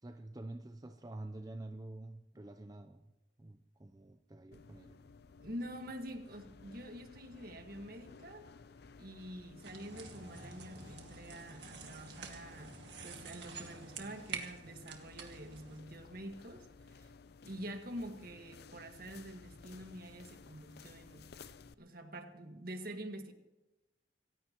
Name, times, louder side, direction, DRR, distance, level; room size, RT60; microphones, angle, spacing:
voice 1, 0.0-3.1 3.4-5.0, right 2 dB, 20° right, 7 dB, 0.6 m, -48 dB
sound 1, 4.5-21.7, left 4 dB, 60° left, 0.6 m, -56 dB
voice 2, 5.4-8.5 9.0-17.1 17.4-21.3 21.8-23.3, right 1 dB, 55° right, 5 dB, 1.7 m, -47 dB
sound 2, 9.6-15.8, right 5 dB, 70° right, 1.9 m, -48 dB
26.5 x 15.0 x 3.1 m, 1.0 s
head